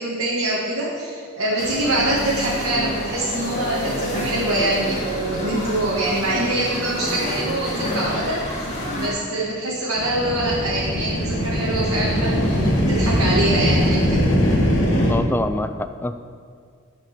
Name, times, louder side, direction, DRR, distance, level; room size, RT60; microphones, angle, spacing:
voice 1, 0.0-14.3, right 1 dB, 85° right, -7 dB, 1.8 m, -24 dB
sound 1, 1.6-9.1, left 1 dB, 30° left, 2.0 m, -28 dB
sound 2, 9.9-15.1, equal, 55° left, 2.1 m, -20 dB
voice 2, 15.1-16.2, left 2 dB, 10° left, 9 dB, 0.3 m, -25 dB
10.0 x 5.3 x 7.4 m, 2.1 s
head